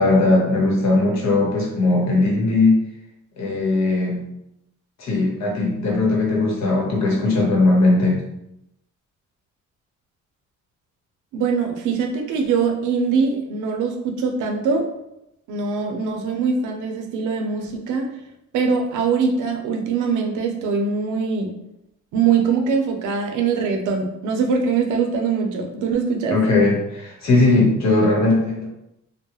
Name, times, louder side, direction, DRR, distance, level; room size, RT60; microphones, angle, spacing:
voice 1, 0.0-2.8 3.4-4.2 5.0-8.2 26.3-28.7, left 2 dB, 60° left, -2 dB, 1.0 m, -18 dB
voice 2, 11.3-14.9 15.5-18.1 18.5-21.5 22.1-26.4, right 5 dB, 80° right, 3 dB, 0.5 m, -22 dB
2.3 x 2.1 x 2.9 m, 0.84 s
cardioid pair, 90°, 30 cm